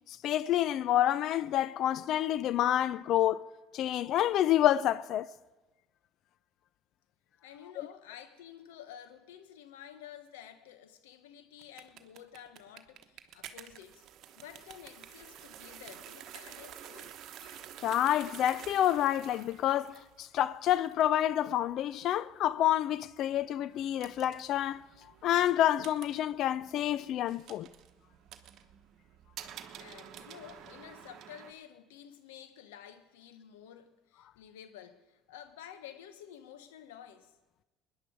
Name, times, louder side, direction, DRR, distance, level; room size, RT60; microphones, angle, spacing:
voice 1, 0.1-5.3 17.8-24.8 25.2-27.7, left 12 dB, 60° left, 0.4 m, -28 dB
voice 2, 7.4-14.0 14.3-17.2 29.7-37.3, left 10 dB, 85° left, 1.2 m, -51 dB
sound 1, 11.6-31.5, right 10 dB, 60° right, 1.1 m, -51 dB
20.5 x 10.5 x 5.2 m
supercardioid pair, 75°, 0 cm